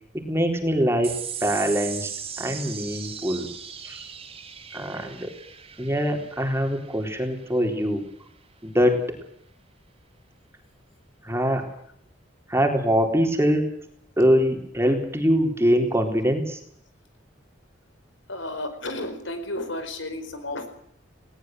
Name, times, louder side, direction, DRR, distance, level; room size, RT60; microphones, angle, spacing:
voice 1, 0.3-2.1 2.4-3.5 3.8-4.1 4.7-5.3 5.8-8.0 8.6-9.0 11.2-11.7 12.5-13.7 14.2-16.6, equal, 15° right, 3 dB, 3.9 m, -23 dB
sound 1, 1.0-7.8, right 8 dB, 30° right, 3.8 m, -38 dB
voice 2, 18.3-20.7, left 1 dB, 75° left, 8 dB, 4.9 m, -32 dB
20.0 x 18.5 x 7.8 m, 0.69 s
head